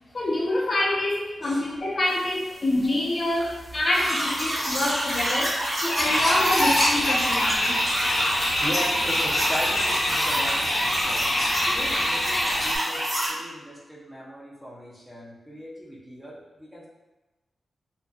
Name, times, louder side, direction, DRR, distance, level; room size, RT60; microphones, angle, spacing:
voice 1, 0.1-7.8, left 1 dB, 40° left, -3 dB, 0.4 m, -26 dB
sound 1, 3.9-13.3, equal, 30° right, 1.1 m, -27 dB
sound 2, 6.0-12.8, left 1 dB, 70° left, 0.7 m, -26 dB
voice 2, 8.3-11.3 11.6-16.9, equal, 10° right, -6 dB, 0.6 m, -38 dB
2.5 x 2.5 x 2.2 m, 1.1 s
wide cardioid pair, 130°, 0 cm